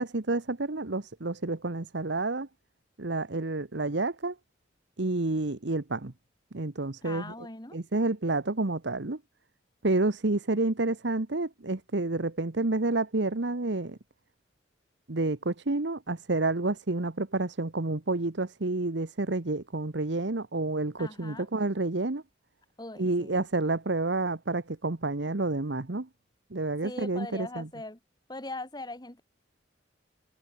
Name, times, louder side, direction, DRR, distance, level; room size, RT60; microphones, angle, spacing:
voice 1, 0.0-2.5 3.0-4.3 5.0-6.1 6.5-7.3 7.7-9.2 9.8-14.0 15.1-22.2 23.0-26.1 26.5-27.7, right 2 dB, 70° right, 1.2 m, -29 dB
voice 2, 7.0-7.8 21.0-21.5 22.8-23.5 26.8-28.0 28.3-29.2, left 2 dB, 20° left, 2.2 m, -40 dB
head